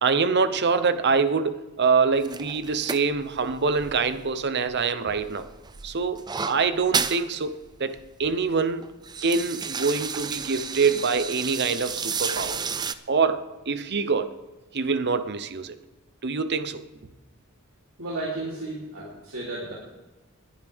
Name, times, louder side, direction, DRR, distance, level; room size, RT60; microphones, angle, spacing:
voice 1, 0.0-5.5 5.8-6.2 6.5-8.8 9.2-12.6 13.1-14.3 14.7-15.8 16.2-16.8, right 5 dB, 50° right, 0.8 m, -25 dB
sound 1, 2.2-4.7 5.1-7.2 7.6-7.7 8.0-8.4 8.8-12.9, right 6 dB, 20° right, 0.4 m, -32 dB
voice 2, 18.0-19.7, right 2 dB, 75° right, 3.5 m, -33 dB
20.0 x 10.5 x 3.6 m
head